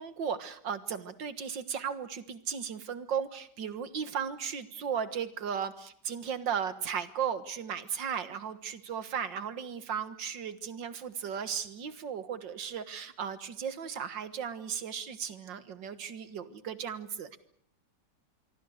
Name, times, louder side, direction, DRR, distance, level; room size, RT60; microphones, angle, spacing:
voice 1, 0.0-17.4, right 7 dB, 90° right, 12 dB, 2.2 m, -36 dB
26.0 x 23.5 x 6.5 m, 0.65 s
omnidirectional pair, 1.9 m